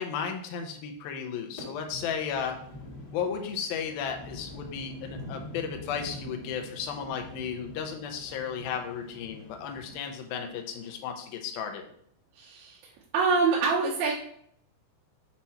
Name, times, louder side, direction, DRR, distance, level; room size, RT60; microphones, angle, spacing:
voice 1, 0.0-2.6 3.1-11.9, left 7 dB, 75° left, 4 dB, 2.3 m, -34 dB
sound 1, 1.6-10.9, left 1 dB, 35° left, 1.6 m, -45 dB
voice 2, 12.4-12.8 13.1-14.1, right 4 dB, 90° right, -7 dB, 3.4 m, -25 dB
7.7 x 3.0 x 5.7 m, 0.65 s
omnidirectional pair, 5.1 m